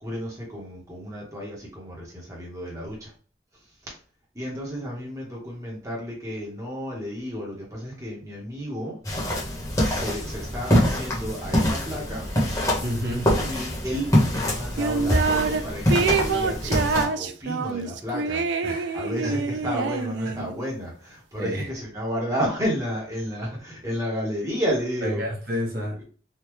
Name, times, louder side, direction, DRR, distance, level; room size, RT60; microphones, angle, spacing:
voice 1, 0.0-3.1 4.3-9.0 9.8-12.3 13.4-18.7 18.9-25.3, equal, 20° right, -3 dB, 0.9 m, -32 dB
sound 1, 9.0-17.0, equal, 20° left, 1.0 m, -24 dB
voice 2, 12.8-13.4 18.6-19.7 20.3-20.5 21.4-21.7 25.0-26.0, equal, 50° right, -2 dB, 1.0 m, -31 dB
sound 2, 14.8-15.6 15.9-20.5, right 4 dB, 70° right, 0.3 m, -26 dB
3.5 x 2.2 x 3.0 m, 0.40 s
head